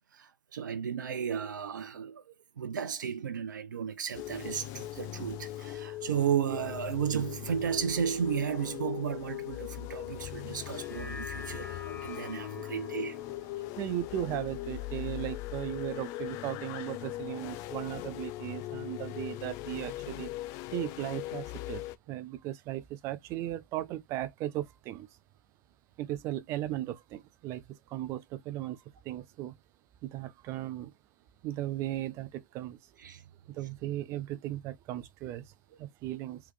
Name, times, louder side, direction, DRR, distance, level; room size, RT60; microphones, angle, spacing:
voice 1, 0.1-13.2 33.0-33.2, right 8 dB, 65° right, 0.7 m, -34 dB
sound 1, 4.1-22.0, left 15 dB, 25° left, 0.3 m, -40 dB
sound 2, 10.7-15.2 15.6-15.7, left 3 dB, 90° left, 1.4 m, -48 dB
voice 2, 13.8-20.3 20.7-21.8 22.1-25.1 26.0-29.5 30.0-30.9 31.4-32.8 33.5-35.5 35.8-36.4, right 14 dB, 25° right, 0.5 m, -37 dB
3.5 x 3.1 x 3.2 m
figure-of-eight pair, 120°, 11 cm